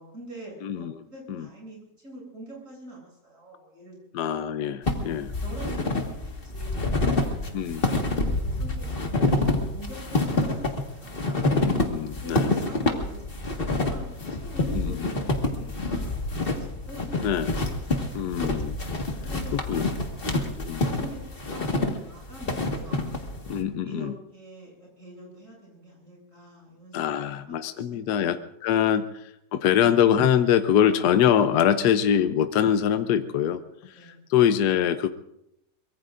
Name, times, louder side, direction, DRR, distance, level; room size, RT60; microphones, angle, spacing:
voice 1, 0.0-4.2 5.3-6.1 6.4-11.2 12.2-17.1 19.2-21.2 21.5-22.6 22.8-23.0 23.8-28.2 28.8-28.9 33.9-34.2, right 1 dB, 45° right, -3 dB, 8.3 m, -45 dB
voice 2, 0.6-0.9 1.3-1.5 4.1-5.3 7.5-7.8 11.5-12.5 14.7-15.1 17.2-17.5 18.1-18.7 19.7-19.9 20.6-20.8 23.5-24.1 26.9-35.1, left 9 dB, 75° left, 10 dB, 1.3 m, -24 dB
sound 1, 4.9-23.6, left 2 dB, 35° left, 1.8 m, -27 dB
24.0 x 22.5 x 2.6 m, 0.81 s
omnidirectional pair, 1.8 m